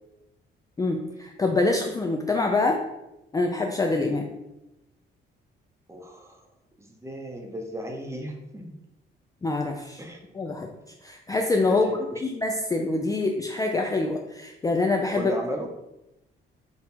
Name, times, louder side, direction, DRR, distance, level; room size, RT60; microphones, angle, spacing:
voice 1, 0.8-2.8 3.3-4.3 9.4-10.0 10.3-10.7 11.0-11.9 12.2-15.3, left 3 dB, 20° left, 2 dB, 0.4 m, -25 dB
voice 2, 5.9-6.4 6.8-8.7 10.0-10.2 11.7-12.0 15.2-15.7, right 1 dB, 15° right, 2 dB, 0.8 m, -35 dB
4.2 x 2.4 x 4.3 m, 0.93 s
cardioid pair, 90°, 20 cm